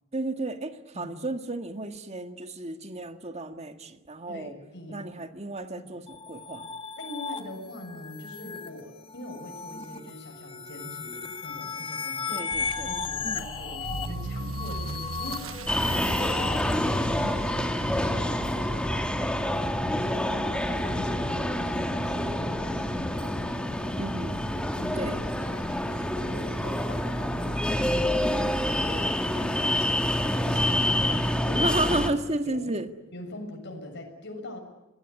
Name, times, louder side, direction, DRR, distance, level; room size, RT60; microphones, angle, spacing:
voice 1, 0.1-4.6 4.9-6.7 12.3-12.9 13.2-13.5 17.2-17.4 24.0-24.4 25.0-25.2 31.0-31.2 31.5-32.9, right 2 dB, 35° right, 7 dB, 1.7 m, -33 dB
voice 2, 4.3-5.2 5.8-6.0 7.0-12.5 12.8-19.5 19.9-24.1 24.5-31.8 32.5-32.7 33.1-34.6, left 1 dB, 60° left, 3 dB, 6.9 m, -43 dB
sound 1, 6.1-16.7, left 5 dB, 25° left, 1.9 m, -36 dB
Motor vehicle (road) / Accelerating revving vroom, 12.5-27.4 27.7-28.0 28.6-28.7 29.0-29.1 29.3-29.4 30.7-30.8, right 2 dB, 80° right, 1.1 m, -41 dB
sound 2, 15.7-32.1, left 1 dB, 5° left, 2.1 m, -27 dB
27.5 x 20.0 x 9.8 m, 0.98 s
head